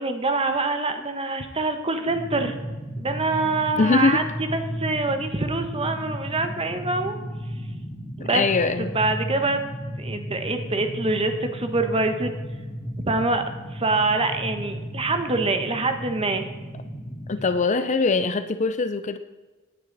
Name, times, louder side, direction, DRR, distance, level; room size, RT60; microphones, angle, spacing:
voice 1, 0.0-2.5 3.0-7.2 8.2-8.4 8.8-9.6 10.0-12.3 13.1-13.4 13.7-16.5, right 3 dB, 25° right, 7 dB, 1.2 m, -25 dB
sound 1, 2.1-17.5, equal, 5° left, 2.0 m, -34 dB
voice 2, 3.8-4.2 8.2-8.9 17.3-19.2, left 4 dB, 35° left, 11 dB, 0.5 m, -22 dB
17.5 x 9.6 x 4.1 m, 1.3 s
head